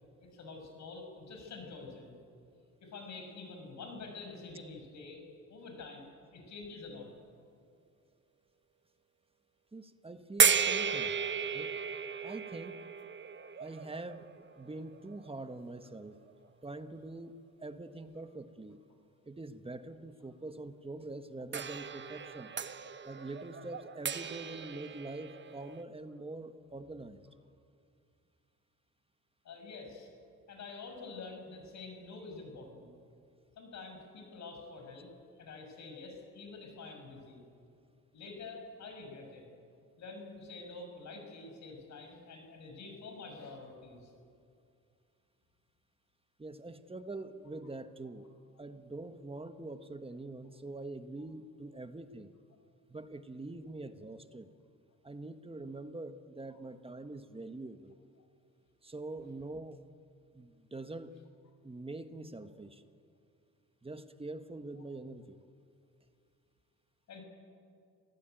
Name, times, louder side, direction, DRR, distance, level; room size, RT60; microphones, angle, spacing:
voice 1, 0.2-2.1 2.8-5.2 5.5-7.1 29.4-30.1 30.5-32.9 33.6-35.1 35.4-37.4 38.1-39.4 40.0-44.1 51.7-51.8 67.1-67.2, left 3 dB, 65° left, 3 dB, 6.5 m, -47 dB
voice 2, 9.7-11.1 11.5-11.8 12.2-12.8 13.6-14.3 14.6-16.2 16.6-18.8 19.2-22.5 23.0-27.3 46.4-48.3 48.6-52.3 52.9-54.5 55.0-58.0 58.8-59.8 60.3-61.1 61.6-62.8 63.8-65.4, right 2 dB, 20° right, 9 dB, 1.4 m, -44 dB
sound 1, 10.4-15.4 16.3-16.4 21.5-25.8, right 6 dB, 40° right, 1.2 m, -34 dB
27.0 x 17.5 x 9.2 m, 2.4 s
cardioid pair, 90°, 30 cm